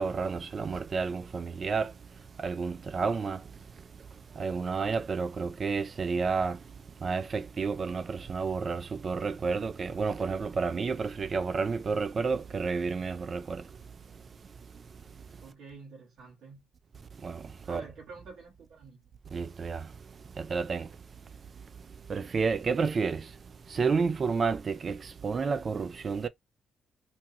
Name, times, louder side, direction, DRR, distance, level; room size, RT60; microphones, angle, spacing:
voice 1, 0.0-1.9 2.4-3.4 4.4-6.6 7.0-13.6 17.2-17.8 19.3-19.9 20.4-20.9 22.1-23.3 23.7-26.3, right 5 dB, 40° right, 0.3 m, -30 dB
voice 2, 15.4-16.7 17.6-19.0, right 4 dB, 75° right, 1.4 m, -48 dB
2.8 x 2.3 x 2.9 m
cardioid pair, 90°, 0 cm